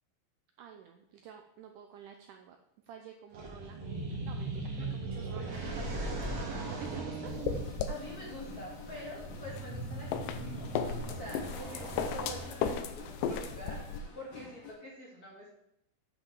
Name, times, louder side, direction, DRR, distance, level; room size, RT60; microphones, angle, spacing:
voice 1, 0.6-2.6 2.8-3.8 4.2-7.3 8.9-9.2, right 8 dB, 85° right, 5 dB, 1.8 m, -50 dB
sound 1, 3.3-12.8, right 2 dB, 50° right, 2.8 m, -39 dB
voice 2, 4.7-5.2 5.6-5.7 7.9-13.8 14.1-15.5, equal, 25° left, -4 dB, 2.5 m, -46 dB
sound 2, 7.3-14.0, left 6 dB, 75° left, 2.1 m, -37 dB
sound 3, 7.5-14.7, left 5 dB, 50° left, 2.5 m, -50 dB
8.5 x 5.4 x 7.4 m, 0.79 s
omnidirectional pair, 4.5 m